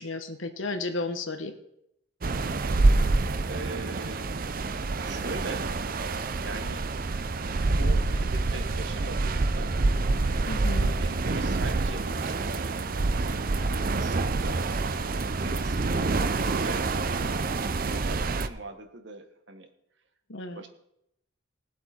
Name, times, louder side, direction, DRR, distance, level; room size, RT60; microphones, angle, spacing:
voice 1, 0.0-1.5 10.5-10.9 20.3-20.6, left 3 dB, 75° left, 7 dB, 1.2 m, -33 dB
sound 1, 2.2-18.5, right 3 dB, 45° right, 0.6 m, -27 dB
voice 2, 3.5-4.5 4.8-5.7 6.4-6.9 7.8-9.7 10.9-13.5 13.9-14.7 15.1-19.7 20.5-20.7, right 2 dB, 60° right, 6 dB, 1.5 m, -42 dB
20.0 x 7.7 x 4.4 m, 0.78 s
head